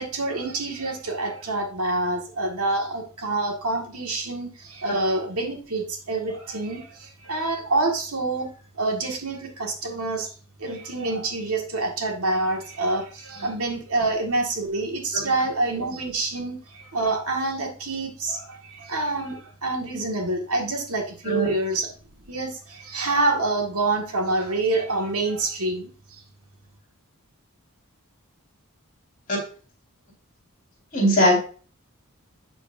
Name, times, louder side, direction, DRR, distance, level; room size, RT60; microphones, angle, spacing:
voice 1, 0.0-8.5 8.8-10.3 10.6-21.9 22.3-26.2, right 2 dB, 75° right, 1 dB, 1.8 m, -27 dB
voice 2, 30.9-31.4, equal, 40° left, -1 dB, 4.3 m, -19 dB
8.2 x 6.7 x 2.6 m, 0.38 s
head